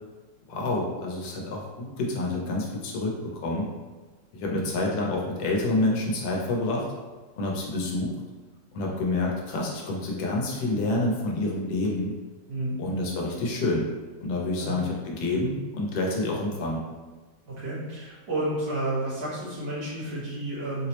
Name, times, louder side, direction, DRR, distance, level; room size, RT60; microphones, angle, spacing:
voice 1, 0.5-3.7 4.3-6.9 7.4-8.1 8.7-12.1 12.8-13.8 14.2-16.8, left 2 dB, 90° left, -2 dB, 1.4 m, -28 dB
voice 2, 17.5-20.9, right 1 dB, 70° right, -10 dB, 2.1 m, -31 dB
4.5 x 2.0 x 2.9 m, 1.3 s
omnidirectional pair, 2.0 m